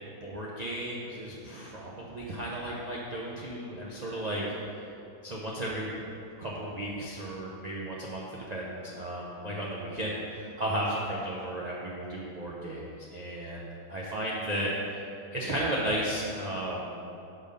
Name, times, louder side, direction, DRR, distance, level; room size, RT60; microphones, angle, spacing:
voice 1, 0.2-4.5 5.2-15.0 15.3-17.0, right 1 dB, 75° right, -4 dB, 0.3 m, -34 dB
6.1 x 5.2 x 5.2 m, 2.7 s
omnidirectional pair, 1.9 m